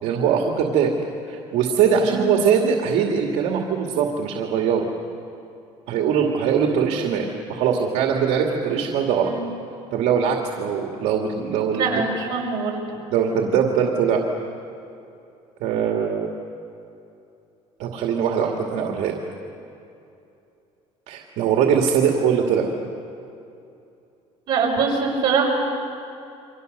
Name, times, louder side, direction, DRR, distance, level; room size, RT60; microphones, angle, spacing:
voice 1, 0.0-0.9 1.3-4.9 5.9-9.3 9.9-11.9 13.1-14.2 15.6-16.3 17.8-19.2 21.1-22.7, right 7 dB, 70° right, 1 dB, 2.4 m, -21 dB
voice 2, 11.7-12.8 24.5-25.5, right 5 dB, 35° right, -2 dB, 5.9 m, -23 dB
29.0 x 25.0 x 6.7 m, 2.7 s
cardioid pair, 175°, 12 cm